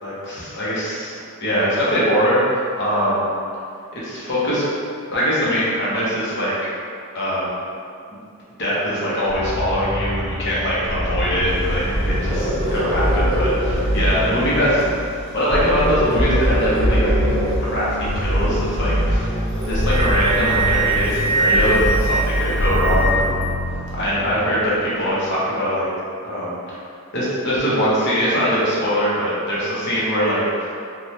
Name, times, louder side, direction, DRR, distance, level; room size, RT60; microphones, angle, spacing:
voice 1, 0.0-3.3 3.9-4.6 5.1-6.5 7.1-7.5 8.6-14.8 15.3-17.1 17.6-19.3 19.7-23.3 23.9-25.9 26.2-26.8 27.1-30.8, equal, 50° left, -8 dB, 0.8 m, -22 dB
sound 1, 9.3-24.9, equal, 80° left, 0.5 m, -23 dB
sound 2, 11.4-19.8, right 1 dB, 20° right, 0.9 m, -28 dB
Wind instrument woodwind instrument, 19.5-23.4, right 3 dB, 50° right, 0.5 m, -23 dB
3.2 x 2.3 x 2.7 m, 2.4 s
head